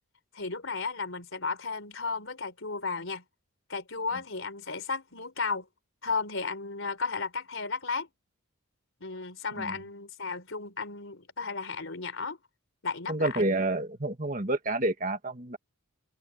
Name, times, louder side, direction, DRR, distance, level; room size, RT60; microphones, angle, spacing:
voice 1, 0.3-3.2 3.7-5.7 6.0-8.1 9.0-12.4 12.8-13.4, left 4 dB, 60° left, 4.2 m, -34 dB
voice 2, 13.1-15.6, right 2 dB, 35° right, 1.9 m, -29 dB
open air
head